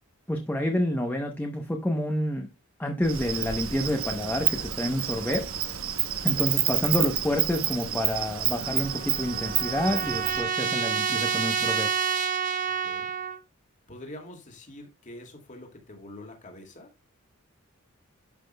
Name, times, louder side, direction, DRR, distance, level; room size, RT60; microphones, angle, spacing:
voice 1, 0.3-2.5 2.8-5.5 6.2-11.9, left 1 dB, 10° left, 0.8 m, -28 dB
Insect, 3.0-10.4, right 11 dB, 75° right, 1.0 m, -29 dB
Trumpet, 8.6-13.4, right 7 dB, 40° right, 0.9 m, -29 dB
voice 2, 10.4-11.0 12.8-13.1 13.9-16.9, left 1 dB, 35° left, 2.3 m, -45 dB
12.0 x 6.0 x 2.3 m
head